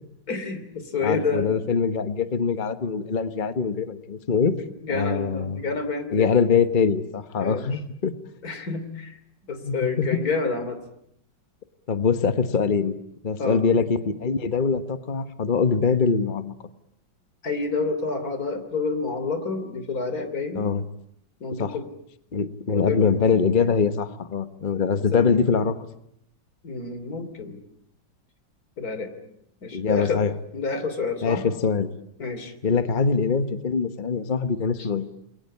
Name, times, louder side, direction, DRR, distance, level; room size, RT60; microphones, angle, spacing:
voice 1, 0.3-1.5 4.5-6.3 7.4-7.8 8.4-9.2 9.5-10.8 13.4-13.6 17.4-20.7 21.4-21.9 22.7-23.2 25.1-25.2 26.6-27.6 28.8-29.1 29.6-30.2 30.5-31.4 32.2-32.5 34.8-34.9, left 4 dB, 55° left, 10 dB, 3.5 m, -29 dB
voice 2, 1.0-4.6 4.9-5.6 6.1-8.1 9.6-10.2 11.9-12.9 13.2-16.5 20.5-20.8 21.6-21.8 22.3-25.7 29.7-30.3 31.2-31.9 32.6-35.0, left 5 dB, 30° left, 10 dB, 1.3 m, -23 dB
28.5 x 22.5 x 8.5 m, 0.74 s
omnidirectional pair, 1.9 m